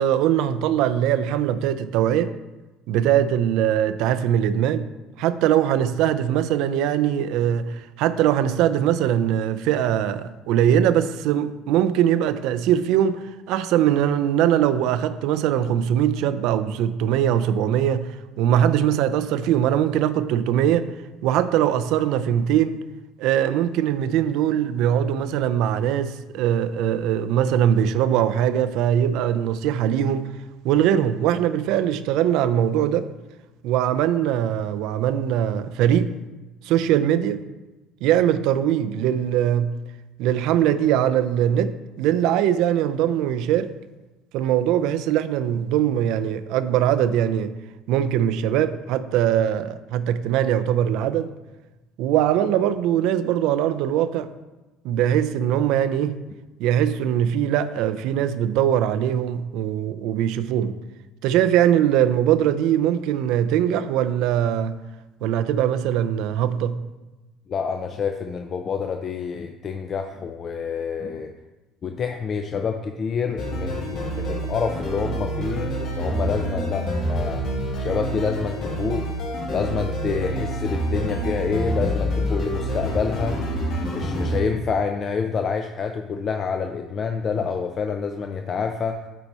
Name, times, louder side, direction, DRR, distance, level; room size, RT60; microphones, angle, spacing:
voice 1, 0.0-2.3 2.9-4.9 5.2-20.9 21.2-22.8 23.2-30.3 30.6-33.1 33.6-36.1 36.6-37.4 38.0-39.8 40.2-43.7 44.3-47.5 47.9-51.3 52.0-54.3 54.8-56.2 56.6-60.8 61.2-64.8 65.2-66.8, right 10 dB, 75° right, 0.4 m, -21 dB
voice 2, 67.5-71.3 71.8-77.4 77.8-79.1 79.5-83.4 83.9-89.0, left 5 dB, 40° left, 0.4 m, -27 dB
sound 1, 73.4-84.4, equal, 65° left, 1.7 m, -27 dB
9.1 x 4.0 x 4.3 m
supercardioid pair, 100°, 0 cm